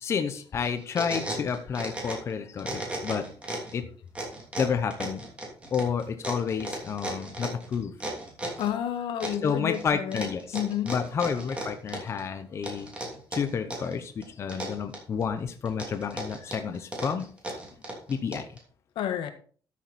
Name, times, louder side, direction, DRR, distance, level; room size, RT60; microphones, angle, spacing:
voice 1, 0.0-3.3 3.7-3.8 4.6-5.2 5.7-7.9 9.4-10.6 10.9-12.9 13.3-17.3 18.1-18.5, left 6 dB, 35° left, 8 dB, 0.8 m, -30 dB
sound 1, 0.6-2.3 2.6-3.7 4.1-8.7 9.2-9.8 10.1-12.2 12.6-13.9 14.2-15.2 15.7-18.6, right 1 dB, 15° right, 3.0 m, -35 dB
voice 2, 8.6-10.3 10.5-10.9 18.9-19.3, left 10 dB, 80° left, 9 dB, 1.4 m, -30 dB
12.5 x 7.3 x 4.2 m, 0.43 s
cardioid pair, 180°, 8 cm